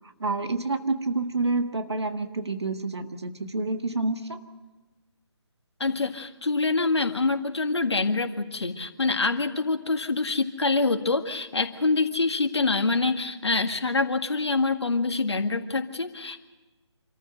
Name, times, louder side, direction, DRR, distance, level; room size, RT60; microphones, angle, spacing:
voice 1, 0.2-4.4, right 3 dB, 65° right, 7 dB, 1.7 m, -28 dB
voice 2, 5.8-16.4, left 3 dB, 70° left, 6 dB, 1.8 m, -25 dB
26.5 x 14.5 x 7.8 m, 1.2 s
figure-of-eight pair, 150°, 15 cm